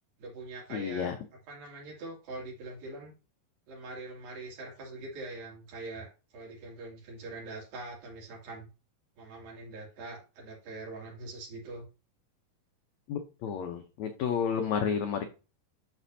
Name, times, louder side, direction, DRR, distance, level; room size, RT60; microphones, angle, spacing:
voice 1, 0.2-1.1 1.5-3.1 3.7-8.7 9.2-11.8, right 2 dB, 70° right, -2 dB, 4.4 m, -43 dB
voice 2, 0.7-1.1 13.1-15.2, left 7 dB, 80° left, 5 dB, 1.6 m, -31 dB
12.0 x 4.2 x 2.7 m, 0.31 s
omnidirectional pair, 4.2 m